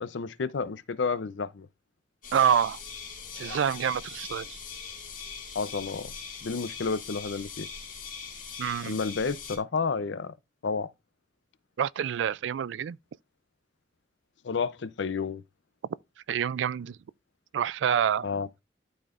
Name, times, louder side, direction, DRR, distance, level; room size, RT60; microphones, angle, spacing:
voice 1, 0.0-1.7 5.5-6.1 6.4-7.7 8.9-10.3 10.6-10.9 14.4-15.4 18.2-18.5, left 5 dB, 80° left, 0.6 m, -30 dB
sound 1, 2.2-9.6, left 6 dB, 45° left, 2.1 m, -41 dB
voice 2, 2.3-2.8 3.3-4.6 8.6-9.0 11.8-13.0 16.3-17.0 17.5-18.3, right 8 dB, 85° right, 0.3 m, -27 dB
12.0 x 4.2 x 2.4 m
head